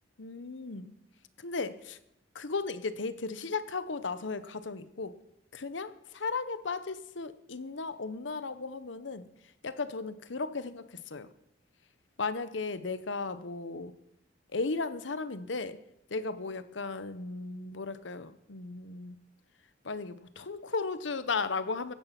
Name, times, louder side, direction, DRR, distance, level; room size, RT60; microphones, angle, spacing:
voice 1, 0.2-0.9 1.4-2.0 2.3-5.2 5.5-9.3 9.6-11.3 12.2-13.9 14.5-15.8 16.1-19.2 19.8-21.9, left 4 dB, 75° left, 13 dB, 0.9 m, -35 dB
15.0 x 11.0 x 6.0 m, 0.81 s
head